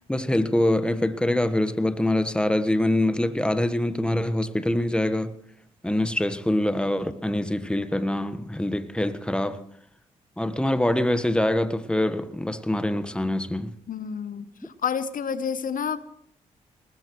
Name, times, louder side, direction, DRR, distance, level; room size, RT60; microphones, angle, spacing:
voice 1, 0.1-5.3 5.8-9.6 10.4-13.7, left 1 dB, 5° left, 1.3 m, -24 dB
voice 2, 13.9-16.0, left 7 dB, 55° left, 0.9 m, -29 dB
23.0 x 20.0 x 3.1 m
hypercardioid pair, 40°, 16 cm